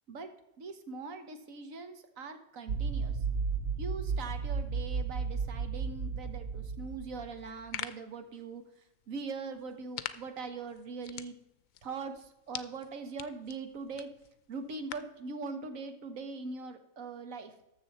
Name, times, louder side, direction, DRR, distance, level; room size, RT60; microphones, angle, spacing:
voice 1, 0.6-3.2 3.8-8.6 9.1-11.4 11.8-14.1 14.5-17.5, right 4 dB, 85° right, 7 dB, 1.5 m, -41 dB
sound 1, 2.7-7.5, right 5 dB, 70° right, 0.9 m, -34 dB
sound 2, 7.4-15.2, left 11 dB, 85° left, 1.0 m, -46 dB
13.0 x 7.0 x 4.2 m, 0.88 s
omnidirectional pair, 1.4 m